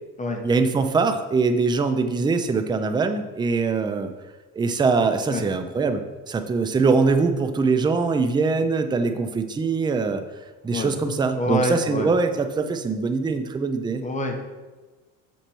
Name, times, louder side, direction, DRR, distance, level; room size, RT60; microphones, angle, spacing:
voice 1, 0.4-4.1 4.6-10.2 10.6-14.0, right 4 dB, 10° right, 8 dB, 0.4 m, -22 dB
voice 2, 11.3-12.1 14.0-14.4, left 1 dB, 15° left, 3 dB, 1.1 m, -26 dB
6.6 x 4.4 x 4.5 m, 1.3 s
supercardioid pair, 100°, 43 cm